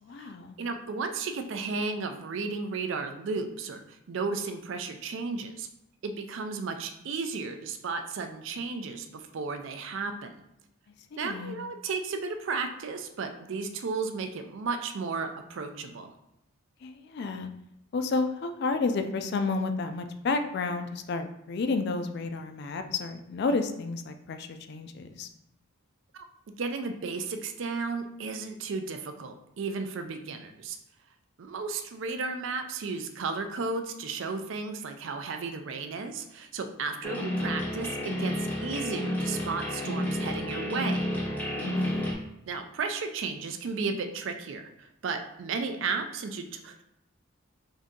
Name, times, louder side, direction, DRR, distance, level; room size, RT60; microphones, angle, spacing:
voice 1, 0.0-0.6 11.1-11.6 16.8-17.5 17.9-25.3 41.6-42.1, left 3 dB, 50° left, 7 dB, 0.3 m, -31 dB
voice 2, 0.6-5.7 6.0-10.4 11.2-16.1 26.1-26.2 26.6-30.8 31.4-41.1 42.5-46.8, right 4 dB, 60° right, 6 dB, 0.4 m, -34 dB
sound 1, 37.0-42.1, left 1 dB, 10° left, 0.6 m, -31 dB
3.6 x 2.7 x 3.7 m, 0.82 s
head